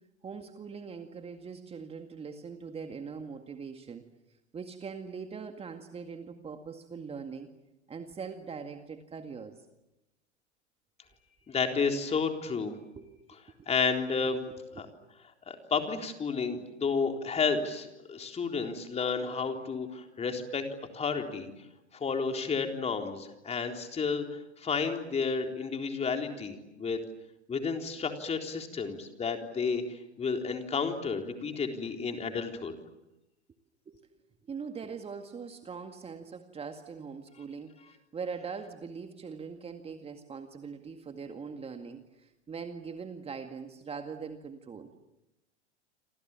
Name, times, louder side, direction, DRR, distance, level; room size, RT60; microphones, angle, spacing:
voice 1, 0.2-4.1 4.5-7.5 7.9-9.6 13.0-13.1 13.6-13.7 14.3-14.9 33.9-34.0 34.5-44.9, right 5 dB, 15° right, 6 dB, 2.0 m, -42 dB
voice 2, 11.5-12.8 13.7-14.4 14.8-14.9 15.5-20.7 20.9-21.5 21.9-27.0 27.5-32.7, left 5 dB, 20° left, 4 dB, 3.9 m, -31 dB
28.0 x 27.5 x 7.3 m, 0.94 s
figure-of-eight pair, 95°, 34 cm